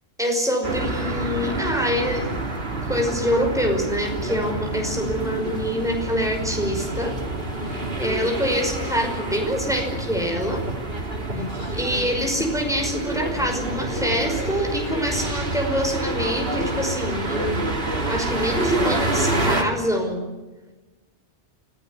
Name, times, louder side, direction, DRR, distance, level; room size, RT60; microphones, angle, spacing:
voice 1, 0.2-2.3 2.8-7.1 8.0-10.6 11.8-17.6 18.1-20.2, equal, 5° right, 2 dB, 5.5 m, -25 dB
sound 1, 0.6-19.6, right 2 dB, 55° right, 3.0 m, -28 dB
voice 2, 7.6-8.2 11.3-12.1, left 5 dB, 60° left, 6 dB, 2.2 m, -38 dB
26.0 x 15.5 x 9.7 m, 1.2 s
omnidirectional pair, 1.2 m